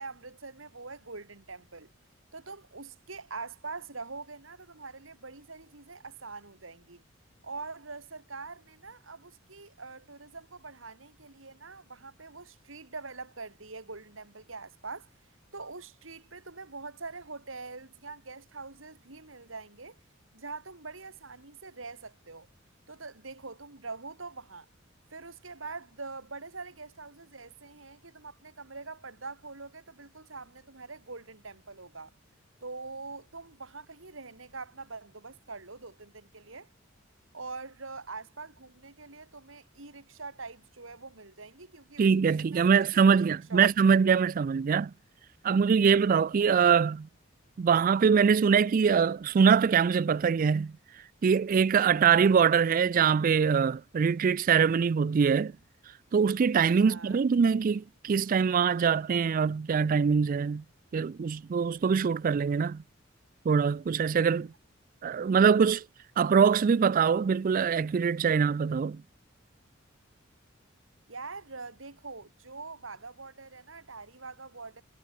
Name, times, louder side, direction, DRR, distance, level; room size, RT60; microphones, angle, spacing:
voice 1, 0.0-1.9 2.3-7.0 7.4-15.1 15.5-20.0 20.3-22.5 22.9-24.7 25.1-32.1 32.6-36.7 37.3-43.2 43.5-43.7 56.8-57.2 71.1-74.8, right 3 dB, 80° right, 3.3 m, -44 dB
voice 2, 42.0-44.9 45.4-47.1 47.6-50.7 51.2-55.5 56.1-60.6 60.9-62.8 63.5-64.5 65.0-65.8 66.2-69.0, right 6 dB, 45° right, 0.3 m, -23 dB
head